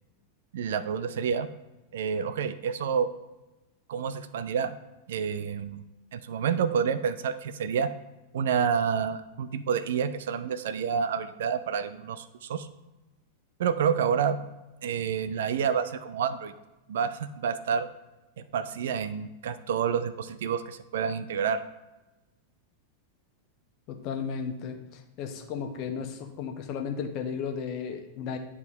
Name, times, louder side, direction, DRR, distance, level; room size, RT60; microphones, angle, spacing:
voice 1, 0.5-1.5 1.9-3.1 3.9-4.8 5.1-5.8 6.1-7.9 8.3-12.7 13.6-14.4 14.8-16.5 16.9-17.9 18.4-21.6, right 7 dB, 60° right, 13 dB, 0.3 m, -28 dB
voice 2, 23.9-28.4, left 6 dB, 40° left, 4 dB, 0.9 m, -34 dB
10.0 x 3.6 x 2.9 m, 1.0 s
figure-of-eight pair, 90°, 0 cm